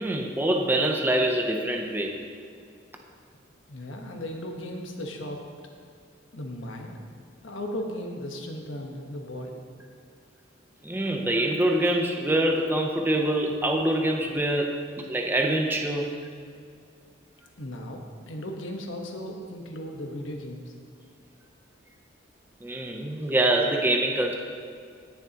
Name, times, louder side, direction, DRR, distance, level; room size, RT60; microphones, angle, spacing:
voice 1, 0.0-2.1 10.8-14.8 15.1-16.1 22.6-24.3, right 1 dB, 10° right, 2 dB, 0.7 m, -25 dB
voice 2, 3.7-5.4 6.3-6.9 7.4-9.6 17.6-20.7, left 1 dB, 80° left, 2 dB, 1.3 m, -36 dB
17.5 x 7.1 x 2.9 m, 2.3 s
head